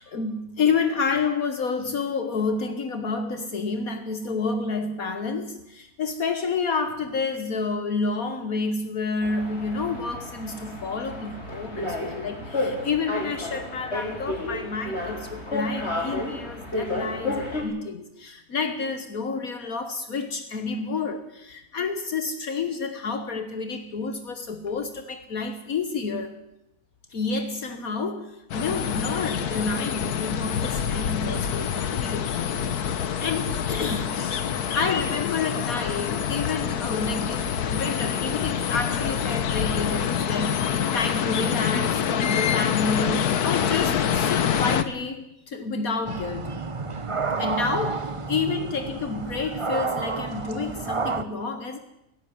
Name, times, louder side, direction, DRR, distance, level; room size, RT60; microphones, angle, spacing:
voice 1, 0.0-26.4 27.1-34.4 34.7-40.6 40.9-46.7 47.4-51.8, left 4 dB, 65° left, 1.8 m, -29 dB
sound 1, 9.2-17.6, left 2 dB, 45° left, 5.5 m, -31 dB
sound 2, 28.5-44.8, left 8 dB, 85° left, 1.6 m, -26 dB
sound 3, 46.1-51.2, right 4 dB, 25° right, 0.8 m, -30 dB
17.5 x 16.5 x 9.5 m
omnidirectional pair, 1.6 m